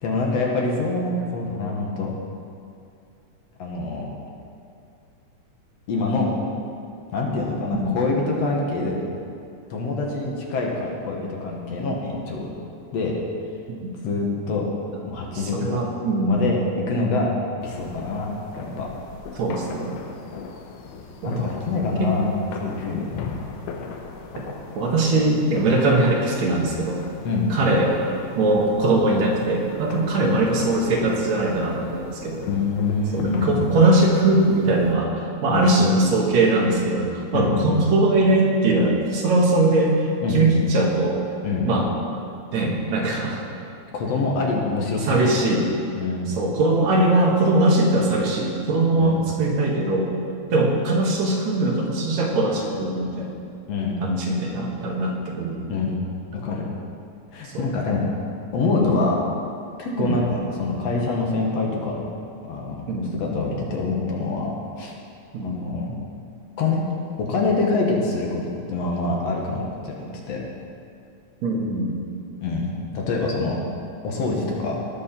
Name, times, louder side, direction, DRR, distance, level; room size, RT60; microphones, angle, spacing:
voice 1, 0.0-2.1 3.6-4.1 5.9-6.3 7.1-9.0 9.7-12.5 12.9-13.2 14.0-14.7 15.0-15.8 16.3-16.6 16.9-18.3 18.6-18.9 21.2-22.3 22.6-23.1 27.2-27.5 30.2-30.4 32.5-33.7 35.5-35.7 37.3-37.8 40.2-40.4 41.4-41.7 43.9-45.2 45.9-46.4 49.0-49.2 53.7-54.0 55.7-56.0 56.3-56.6 57.3-58.1 58.5-59.2 59.8-62.1 62.4-62.8 63.1-64.9 65.4-65.9 66.6-66.8 67.2-68.4 68.7-70.4 72.4-73.6 74.0-74.8, left 3 dB, 65° left, -2 dB, 2.2 m, -25 dB
voice 2, 15.5-16.5 19.4-20.0 21.2-21.5 22.0-22.1 24.8-27.0 27.5-28.0 28.4-32.5 33.1-41.2 41.7-41.9 42.5-43.5 45.0-45.7 46.3-50.1 50.5-53.3 54.0-55.7 57.4-57.7 60.0-60.2 62.9-63.2 65.3-65.6 71.4-72.0, right 2 dB, 65° right, -1 dB, 2.4 m, -21 dB
sound 1, 17.6-35.0, left 5 dB, 80° left, 2.4 m, -38 dB
18.5 x 6.5 x 4.4 m, 2.5 s
omnidirectional pair, 3.5 m